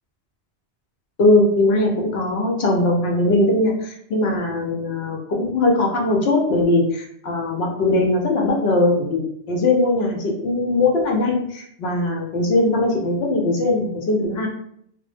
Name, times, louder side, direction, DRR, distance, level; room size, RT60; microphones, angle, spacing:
voice 1, 1.2-14.5, left 2 dB, 70° left, 0 dB, 0.8 m, -20 dB
2.1 x 2.0 x 3.2 m, 0.70 s
omnidirectional pair, 1.2 m